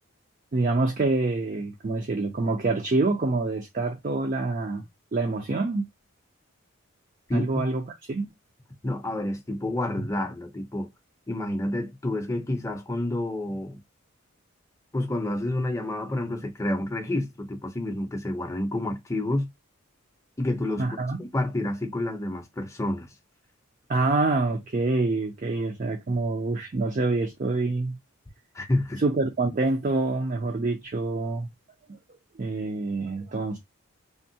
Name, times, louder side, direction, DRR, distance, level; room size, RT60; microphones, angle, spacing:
voice 1, 0.5-4.8 5.1-5.9 7.3-8.3 20.8-21.2 23.9-28.0 29.0-31.5 31.9-32.0 32.4-33.6, right 3 dB, 40° right, 0.4 m, -26 dB
voice 2, 7.3-7.6 8.8-10.9 11.3-13.8 14.9-19.5 20.4-20.9 21.2-23.1 28.5-29.0, left 1 dB, 15° left, 0.5 m, -29 dB
3.5 x 2.1 x 2.7 m
head